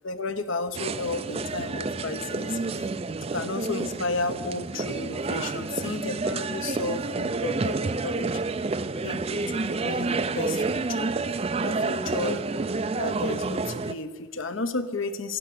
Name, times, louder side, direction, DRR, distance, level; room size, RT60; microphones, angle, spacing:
voice 1, 0.0-2.9 3.3-8.4 9.0-11.1 11.6-12.5 12.9-15.4, left 3 dB, 65° left, 10 dB, 1.0 m, -33 dB
sound 1, 0.7-13.9, right 3 dB, 30° right, 0.4 m, -29 dB
14.0 x 10.5 x 9.5 m, 1.5 s
head